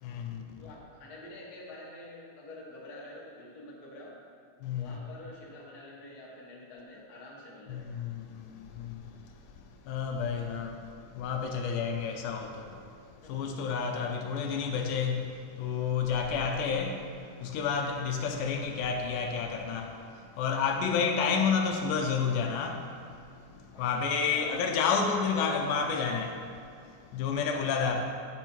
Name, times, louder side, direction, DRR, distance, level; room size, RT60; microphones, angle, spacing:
voice 1, 0.0-0.6 4.6-4.9 7.7-9.1 9.8-12.8 13.2-23.1 23.5-26.5 27.1-28.0, left 6 dB, 80° left, 2.1 m, -30 dB
voice 2, 0.6-4.1 4.8-8.0 13.2-13.5 14.1-14.2 23.7-24.0 24.3-24.6 27.5-27.9, left 2 dB, 40° left, 1.5 m, -47 dB
8.4 x 6.3 x 4.5 m
omnidirectional pair, 3.6 m